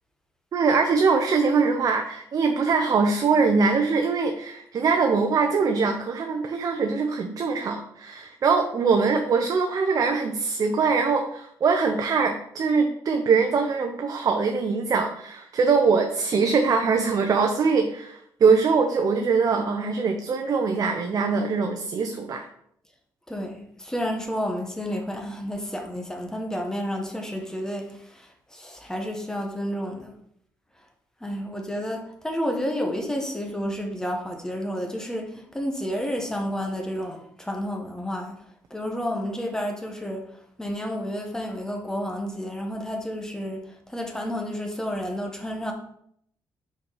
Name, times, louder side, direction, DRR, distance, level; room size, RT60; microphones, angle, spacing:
voice 1, 0.5-22.5, right 5 dB, 50° right, 0.8 m, -22 dB
voice 2, 23.3-30.1 31.2-38.4 38.7-40.2 40.6-43.6 43.9-45.7, equal, 5° left, 1.4 m, -30 dB
5.8 x 4.7 x 5.7 m
cardioid pair, 115°, 8 cm